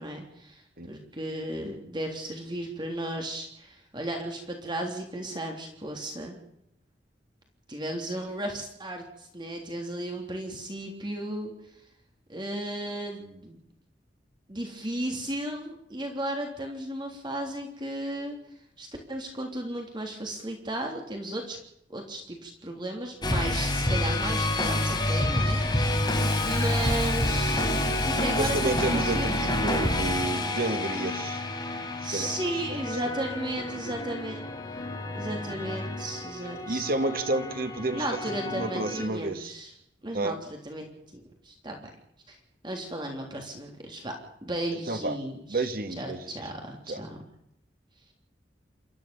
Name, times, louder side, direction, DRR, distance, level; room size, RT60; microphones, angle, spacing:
voice 1, 0.0-6.4 7.7-11.5 12.3-13.6 14.5-18.4 18.8-21.6 21.9-29.5 32.0-34.5 35.1-36.9 37.9-39.7 40.0-41.8 42.3-42.4 42.6-44.1 44.4-45.7 46.0-47.2, right 1 dB, 25° right, 2 dB, 3.4 m, -35 dB
sound 1, 23.2-39.1, left 1 dB, 25° left, 4.4 m, -28 dB
Hiss, 26.1-30.8, left 7 dB, 55° left, 7.8 m, -43 dB
voice 2, 28.4-31.4 32.1-32.3 32.7-32.8 36.7-39.5 40.1-40.4 44.9-45.2 45.5-46.2 46.9-47.0, right 2 dB, 55° right, 8 dB, 1.9 m, -30 dB
28.5 x 14.0 x 7.0 m, 0.78 s
head